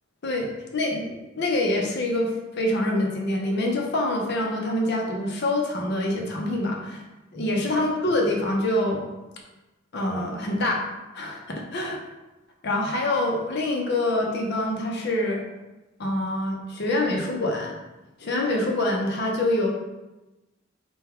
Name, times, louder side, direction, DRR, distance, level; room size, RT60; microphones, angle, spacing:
voice 1, 0.2-7.0 7.3-9.0 9.9-10.9 11.1-12.0 12.6-15.4 16.0-17.8 18.2-19.7, left 1 dB, 55° left, 0 dB, 0.7 m, -25 dB
3.7 x 2.3 x 4.3 m, 1.1 s
head